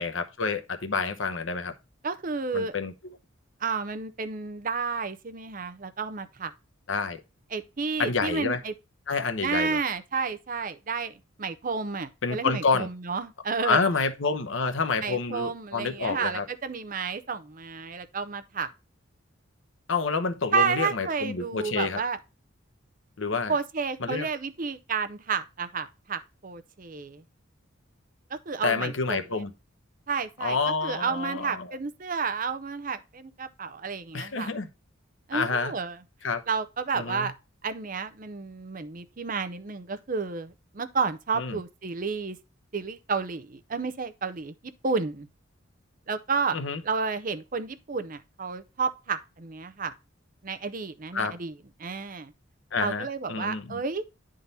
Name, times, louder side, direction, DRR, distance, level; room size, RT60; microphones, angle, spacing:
voice 1, 0.0-1.7 2.5-2.9 6.9-7.2 8.0-8.6 9.1-9.8 12.2-12.9 13.6-16.4 19.9-22.0 23.2-23.5 24.0-24.3 28.6-29.5 30.4-31.7 34.1-34.7 35.3-35.7 36.2-36.4 36.9-37.3 41.3-41.6 46.5-46.8 51.1-51.3 52.7-53.8, left 4 dB, 70° left, 0.9 m, -28 dB
voice 2, 2.0-2.7 3.6-6.5 7.5-8.7 9.4-13.8 15.0-18.7 20.5-22.2 23.5-27.2 28.3-29.2 30.1-30.6 30.8-34.5 35.3-36.0 36.5-37.3 37.6-42.4 42.7-44.5 44.8-45.3 46.1-46.6 46.8-49.9 50.4-51.5 51.8-52.3 52.8-54.0, right 5 dB, 40° right, 0.6 m, -31 dB
10.5 x 3.8 x 4.0 m
head